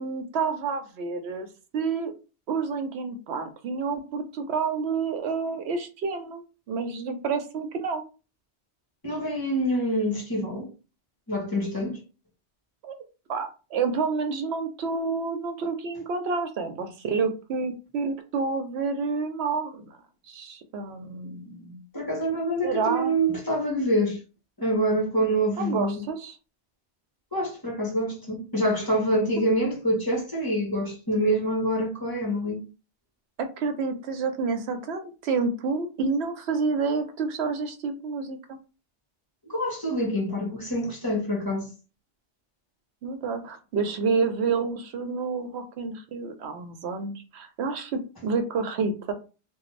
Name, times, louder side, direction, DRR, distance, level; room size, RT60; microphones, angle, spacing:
voice 1, 0.0-1.5 1.7-2.1 2.5-8.0 12.8-12.9 13.3-19.9 20.3-21.8 22.6-23.2 25.6-26.4 33.4-38.6 43.0-49.1, right 4 dB, 70° right, 0.8 m, -29 dB
voice 2, 9.0-10.7 11.3-12.0 21.9-24.2 24.6-26.0 27.3-32.6 39.5-41.7, equal, 20° left, 1.0 m, -26 dB
2.5 x 2.3 x 3.1 m
omnidirectional pair, 1.1 m